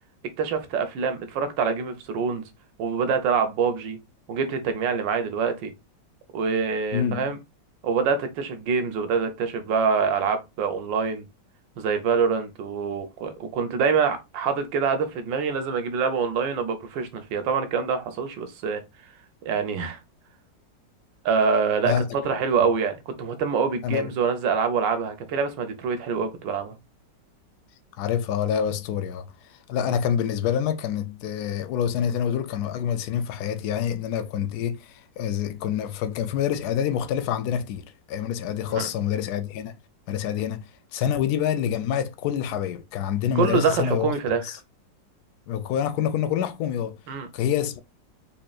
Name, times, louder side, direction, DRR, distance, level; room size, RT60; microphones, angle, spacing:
voice 1, 0.4-2.4 2.8-4.0 4.3-5.7 6.3-7.4 7.8-11.2 11.8-18.8 19.4-20.0 21.2-26.8 29.9-30.0 38.7-38.9 43.3-44.4 47.1-47.3, right 5 dB, 85° right, 1.5 m, -25 dB
voice 2, 6.9-7.3 21.9-22.0 23.8-24.1 28.0-29.3 29.7-39.7 40.1-44.6 45.5-47.0 47.3-47.8, left 9 dB, 70° left, 1.0 m, -27 dB
4.2 x 3.3 x 2.4 m
omnidirectional pair, 1.9 m